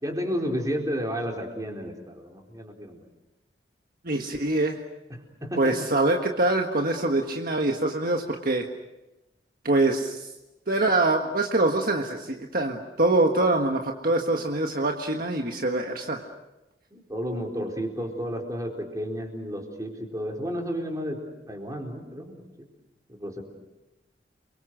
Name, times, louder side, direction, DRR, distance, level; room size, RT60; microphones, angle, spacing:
voice 1, 0.0-3.0 5.1-5.9 16.9-22.4 23.1-23.4, equal, 20° right, 1 dB, 4.4 m, -32 dB
voice 2, 4.0-4.8 5.6-8.7 9.6-10.3 10.7-16.2, right 2 dB, 55° right, 3 dB, 1.6 m, -24 dB
29.5 x 23.5 x 6.6 m, 0.99 s
head